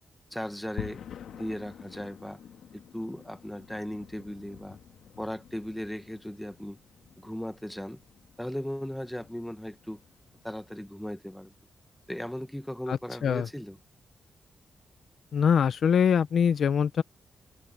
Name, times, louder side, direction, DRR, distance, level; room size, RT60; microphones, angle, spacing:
voice 1, 0.3-1.0 1.3-2.4 2.7-4.8 5.2-6.8 7.2-8.0 8.4-10.0 10.4-11.5 12.1-13.8, equal, 5° left, 1.1 m, -37 dB
sound 1, 0.8-11.0, left 10 dB, 80° left, 1.9 m, -48 dB
voice 2, 12.9-13.5 15.3-17.0, left 7 dB, 60° left, 0.6 m, -23 dB
wide cardioid pair, 155°, 0 cm